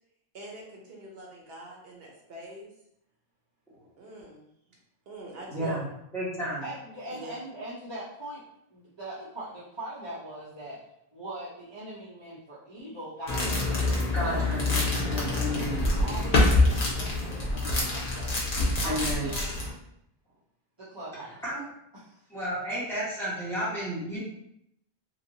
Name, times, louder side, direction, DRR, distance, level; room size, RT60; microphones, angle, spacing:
voice 1, 0.3-2.7 4.0-4.5 5.1-5.8 7.1-7.4 14.7-14.9, right 1 dB, 70° right, -2 dB, 1.0 m, -44 dB
voice 2, 5.5-5.8 6.1-6.6 14.1-15.8 18.8-19.3 21.4-21.6 22.3-24.2, equal, ahead, -10 dB, 1.3 m, -32 dB
voice 3, 6.6-8.4 8.7-10.8 11.1-18.4 18.8-19.5 20.8-21.4 21.9-22.2, right 1 dB, 30° right, -11 dB, 0.7 m, -41 dB
sound 1, 13.3-19.7, left 2 dB, 60° left, 1.0 m, -26 dB
3.1 x 2.8 x 2.7 m, 0.76 s
omnidirectional pair, 1.0 m